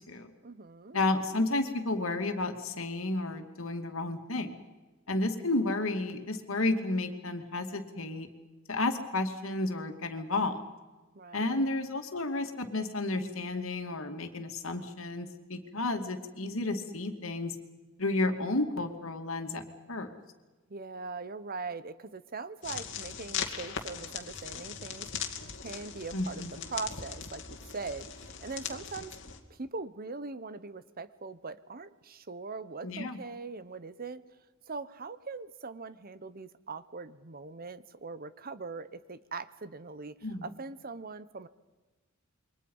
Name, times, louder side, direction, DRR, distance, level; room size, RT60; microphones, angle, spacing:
voice 1, 0.4-1.0 11.1-11.7 20.7-25.1 25.5-26.4 26.7-27.4 27.7-29.2 29.5-34.2 34.7-40.1 40.4-41.5, right 4 dB, 45° right, 14 dB, 1.0 m, -41 dB
voice 2, 0.9-4.6 5.1-8.3 8.7-10.6 11.3-17.5 18.0-20.1 26.1-26.5 32.8-33.2 40.2-40.5, left 2 dB, 80° left, 6 dB, 2.5 m, -32 dB
sound 1, 22.6-29.4, left 7 dB, 60° left, 2.5 m, -39 dB
28.0 x 23.5 x 5.6 m, 1.2 s
head